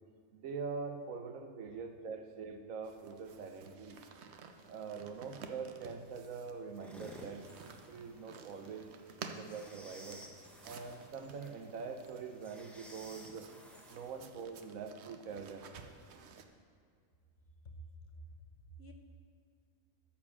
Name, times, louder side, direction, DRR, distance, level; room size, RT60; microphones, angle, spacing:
voice 1, 0.3-4.0 4.7-7.6 7.9-8.9 9.3-10.2 10.6-13.5 13.9-15.7, right 5 dB, 85° right, 7 dB, 1.2 m, -44 dB
sound 1, 2.8-16.4, right 5 dB, 60° right, 0.9 m, -54 dB
sound 2, 6.7-14.3, equal, ahead, 0.9 m, -55 dB
voice 2, 18.0-18.9, equal, 55° left, 3 dB, 1.1 m, -52 dB
13.0 x 4.5 x 7.4 m, 2.1 s
omnidirectional pair, 1.4 m